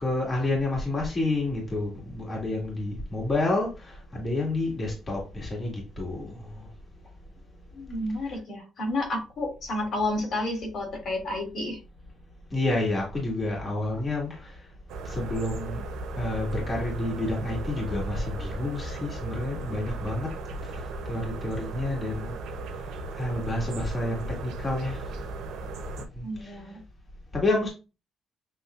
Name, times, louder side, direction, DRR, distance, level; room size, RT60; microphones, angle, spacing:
voice 1, 0.0-6.4 12.5-14.5 15.1-15.8 16.2-20.3 21.1-22.3 23.2-25.0 26.2-26.5 27.3-27.7, left 2 dB, 30° left, -2 dB, 1.9 m, -29 dB
voice 2, 7.7-11.8 26.2-26.8, left 1 dB, 65° left, 1 dB, 2.7 m, -31 dB
sound 1, 14.9-26.0, right 2 dB, 90° right, 0.7 m, -36 dB
6.8 x 3.1 x 2.4 m, 0.31 s
cardioid pair, 90°, 0 cm